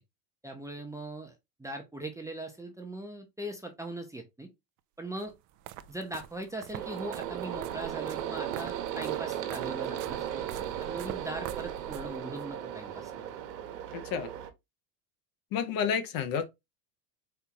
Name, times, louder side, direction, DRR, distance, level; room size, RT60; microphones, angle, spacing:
voice 1, 0.4-1.3 1.6-4.5 5.0-5.3 5.9-13.1, right 1 dB, 5° right, 0.7 m, -40 dB
sound 1, 5.2-12.5, right 11 dB, 40° right, 0.5 m, -45 dB
sound 2, 6.7-14.5, right 10 dB, 75° right, 1.2 m, -36 dB
voice 2, 13.9-14.3 15.5-16.4, left 7 dB, 45° left, 0.9 m, -30 dB
4.5 x 2.7 x 3.9 m
supercardioid pair, 115°, 49 cm